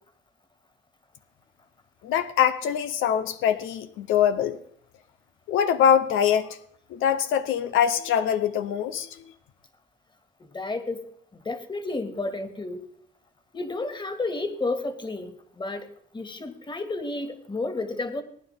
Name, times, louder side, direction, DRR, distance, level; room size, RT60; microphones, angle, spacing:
voice 1, 2.0-4.6 5.5-6.5 6.9-9.1, left 9 dB, 90° left, 0.8 m, -23 dB
voice 2, 10.5-11.1 11.3-12.9 13.5-15.9 16.1-18.2, left 2 dB, 25° left, 2.0 m, -31 dB
19.5 x 9.9 x 3.6 m
cardioid pair, 90°, 20 cm